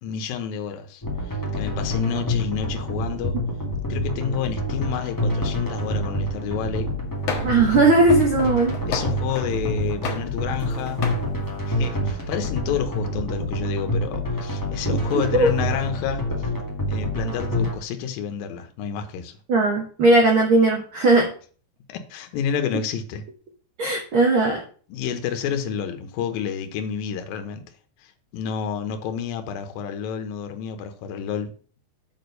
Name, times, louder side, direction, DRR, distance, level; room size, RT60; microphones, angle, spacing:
voice 1, 0.0-3.4 3.9-6.9 8.9-11.0 11.7-16.3 16.9-19.4 21.9-23.2 24.9-27.6 28.0-31.5, left 8 dB, 80° left, 2.7 m, -29 dB
sound 1, 1.0-17.7, equal, 20° left, 0.5 m, -27 dB
sound 2, 7.3-7.7 8.1-9.6 10.0-10.7 11.0-11.3, left 5 dB, 55° left, 2.3 m, -32 dB
voice 2, 7.4-8.8 14.8-15.0 15.3-15.5 19.5-21.3 23.8-24.6, right 2 dB, 75° right, 1.2 m, -18 dB
7.2 x 4.4 x 6.5 m
omnidirectional pair, 4.1 m